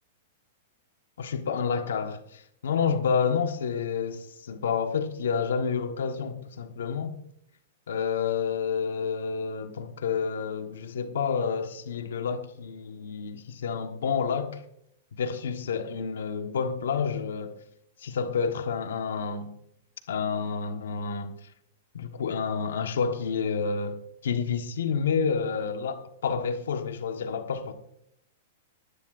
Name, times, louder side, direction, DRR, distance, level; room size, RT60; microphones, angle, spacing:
voice 1, 1.2-7.1 7.9-14.6 15.2-17.6 18.0-19.5 20.1-21.3 21.9-24.0 24.2-25.9 26.2-27.7, left 6 dB, 90° left, 1.3 m, -29 dB
22.0 x 11.5 x 2.5 m
supercardioid pair, 150°, 0 cm